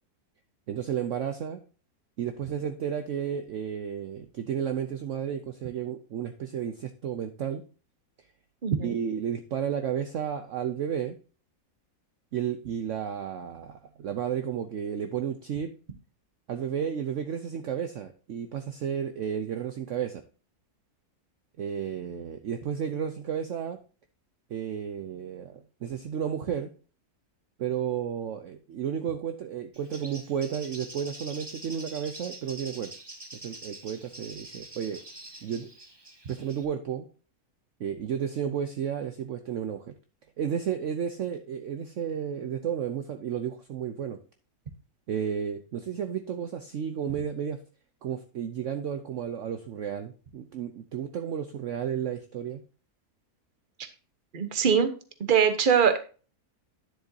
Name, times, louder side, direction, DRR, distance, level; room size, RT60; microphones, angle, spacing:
voice 1, 0.7-1.6 2.2-7.6 8.8-11.2 12.3-15.7 16.5-20.2 21.6-23.8 24.5-26.7 27.6-32.9 33.3-35.0 35.4-35.7 36.3-37.1 37.8-39.9 40.4-44.2 45.1-47.6 48.0-52.6, right 8 dB, 60° right, 8 dB, 0.9 m, -32 dB
voice 2, 8.6-9.0 54.3-54.9 55.2-56.0, right 7 dB, 40° right, 9 dB, 1.0 m, -22 dB
Bird, 29.7-36.6, right 2 dB, 20° right, 1.1 m, -45 dB
10.0 x 7.6 x 2.7 m, 0.37 s
omnidirectional pair, 1.6 m